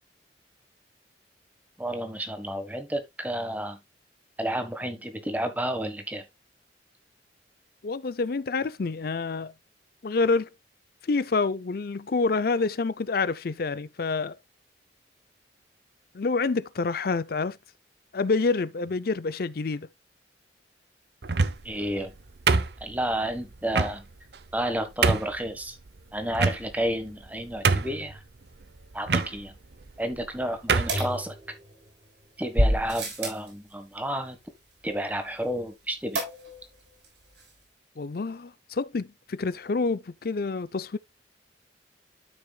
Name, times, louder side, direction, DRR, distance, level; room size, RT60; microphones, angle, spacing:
voice 1, 1.8-3.8 4.4-6.2 21.6-22.1 22.8-24.1 24.5-25.8 26.1-28.2 28.9-29.5 30.0-31.3 32.4-34.4 34.8-36.2, right 1 dB, 10° right, 1.4 m, -31 dB
voice 2, 7.8-9.5 10.0-10.5 11.1-14.4 16.1-17.6 18.1-19.9 38.0-41.0, left 4 dB, 55° left, 0.5 m, -27 dB
sound 1, 21.2-21.8 22.5-23.1 23.7-23.9 24.5-24.6 25.0-25.4 26.3-26.9 27.3-27.4 27.6-28.1 29.1-29.3 30.1-30.3 30.7-31.0, right 4 dB, 65° right, 0.8 m, -24 dB
sound 2, 30.9-31.9 32.5-33.5 36.1-36.7 37.0-37.1 37.4-37.5, equal, 85° right, 6.0 m, -28 dB
12.5 x 6.0 x 2.3 m
head